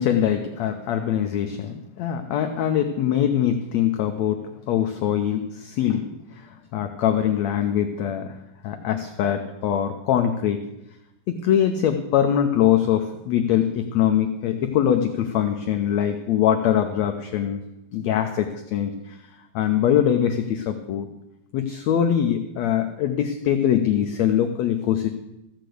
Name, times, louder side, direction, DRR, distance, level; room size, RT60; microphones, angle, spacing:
voice 1, 0.0-6.1 6.4-6.5 6.7-8.4 8.6-10.6 11.3-17.6 17.9-19.2 19.5-21.1 21.5-25.1, left 10 dB, 85° left, 6 dB, 1.5 m, -23 dB
14.5 x 6.7 x 7.7 m, 0.90 s
omnidirectional pair, 4.0 m